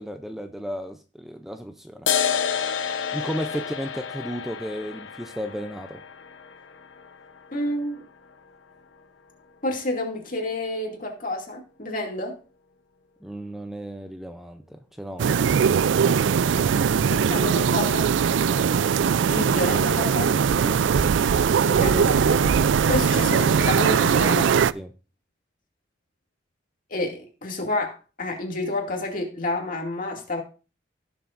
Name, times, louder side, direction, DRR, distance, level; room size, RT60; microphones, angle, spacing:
voice 1, 0.0-2.1 3.1-6.0 13.2-15.6 18.5-18.7 20.6-20.8 24.7-24.9, equal, ahead, 0.5 m, -34 dB
sound 1, 2.1-9.0, left 7 dB, 85° left, 1.0 m, -30 dB
voice 2, 7.5-8.0 9.6-12.4 16.6-16.7 17.1-18.1 19.3-20.5 21.6-24.5 26.9-30.4, left 1 dB, 45° left, 2.3 m, -29 dB
sound 2, 15.2-24.7, right 7 dB, 75° right, 0.4 m, -20 dB
17.5 x 7.1 x 2.6 m
head